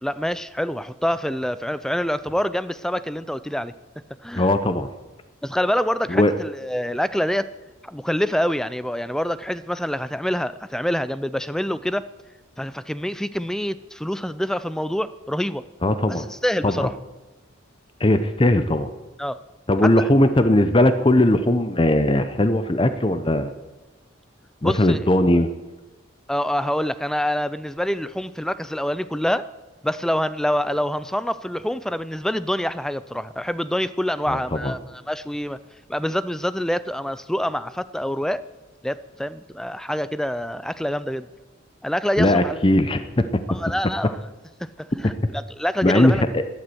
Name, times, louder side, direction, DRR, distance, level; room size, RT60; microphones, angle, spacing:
voice 1, 0.0-3.7 4.2-4.5 5.4-7.5 7.8-12.1 12.6-15.6 16.1-16.9 19.2-19.4 19.8-20.1 24.6-25.1 26.3-29.5 29.8-35.6 35.9-38.5 38.8-41.3 41.8-42.6 43.5-44.2 44.6-46.2, equal, 5° left, 15 dB, 0.4 m, -26 dB
voice 2, 4.3-4.9 6.1-6.3 15.8-16.2 16.6-16.9 18.0-18.9 19.7-23.5 24.6-25.5 34.3-34.7 42.2-43.4 45.0-45.1 45.8-46.4, left 1 dB, 25° left, 10 dB, 0.7 m, -19 dB
12.5 x 11.5 x 7.8 m, 1.1 s
head